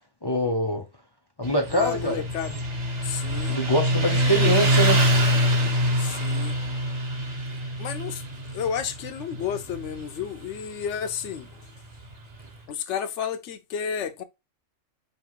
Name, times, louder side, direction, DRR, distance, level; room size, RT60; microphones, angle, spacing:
voice 1, 0.2-0.8 1.4-2.2 3.5-5.0, equal, 40° left, 0.3 m, -24 dB
Motorcycle, 1.4-12.5, equal, 35° right, 1.1 m, -25 dB
voice 2, 1.7-2.6 3.0-3.6 4.1-4.5 6.0-6.6 7.5-8.2 8.5-11.6 12.7-14.2, left 8 dB, 70° left, 0.9 m, -32 dB
5.3 x 2.7 x 3.0 m
omnidirectional pair, 1.4 m